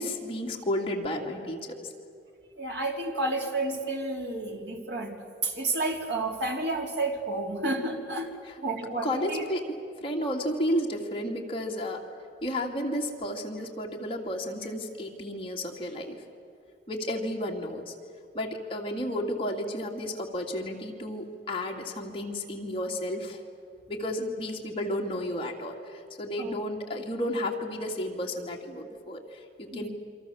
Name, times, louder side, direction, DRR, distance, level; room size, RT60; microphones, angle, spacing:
voice 1, 0.0-1.9 9.0-12.0 12.4-16.2 16.9-17.9 18.3-23.4 23.9-29.9, left 1 dB, 30° left, 0 dB, 2.5 m, -32 dB
voice 2, 2.6-8.3 8.6-9.5 26.4-26.6 29.7-29.9, right 2 dB, 65° right, 2 dB, 3.4 m, -31 dB
28.0 x 25.0 x 7.2 m, 2.4 s
head